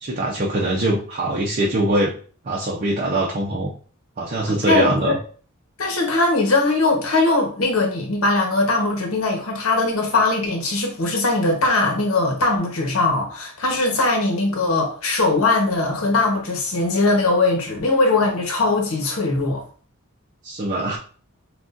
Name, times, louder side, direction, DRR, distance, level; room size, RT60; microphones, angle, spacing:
voice 1, 0.0-2.1 2.4-3.7 4.2-5.2 20.4-21.0, right 1 dB, 40° right, 0.6 m, -22 dB
voice 2, 4.6-5.1 5.8-19.6, left 2 dB, 75° left, 1.1 m, -20 dB
6.2 x 2.4 x 2.5 m
head